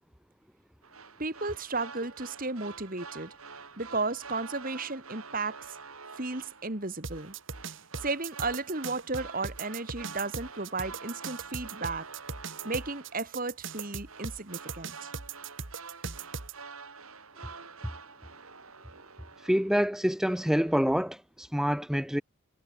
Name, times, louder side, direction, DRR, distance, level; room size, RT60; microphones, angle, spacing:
sound 1, 0.8-19.9 20.2-20.8, right 5 dB, 85° right, 6.9 m, -47 dB
voice 1, 1.2-3.3 3.8-5.8 6.1-7.3 8.0-12.1 12.6-15.1, right 3 dB, 40° right, 2.4 m, -34 dB
sound 2, 7.0-16.5, right 5 dB, 60° right, 1.8 m, -39 dB
voice 2, 19.4-22.2, equal, ahead, 0.7 m, -27 dB
head